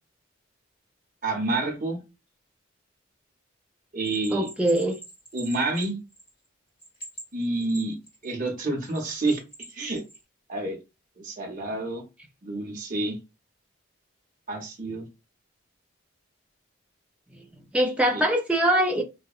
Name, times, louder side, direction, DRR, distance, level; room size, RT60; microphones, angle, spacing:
voice 1, 1.2-2.0 3.9-4.5 5.3-6.0 7.3-8.0 8.2-9.4 9.7-10.0 10.5-10.8 11.2-12.0 12.4-13.2 14.5-15.0 18.1-18.2, right 2 dB, 40° right, 0.7 m, -28 dB
Bell, 4.0-6.5 6.8-8.3 8.8-10.2, right 2 dB, 45° left, 1.4 m, -44 dB
voice 2, 4.3-5.0 17.7-19.0, right 1 dB, 5° right, 0.4 m, -22 dB
2.7 x 2.1 x 2.3 m
head